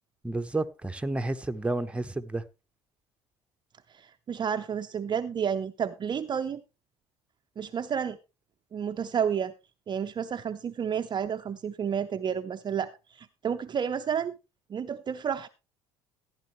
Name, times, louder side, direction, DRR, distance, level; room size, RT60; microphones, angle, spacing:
voice 1, 0.2-2.4, right 2 dB, 10° right, 1.0 m, -31 dB
voice 2, 3.9-6.6 7.6-8.2 8.7-9.5 9.9-14.4 14.7-15.5, right 7 dB, 30° right, 0.7 m, -31 dB
14.5 x 10.5 x 3.2 m
figure-of-eight pair, 60°, 14 cm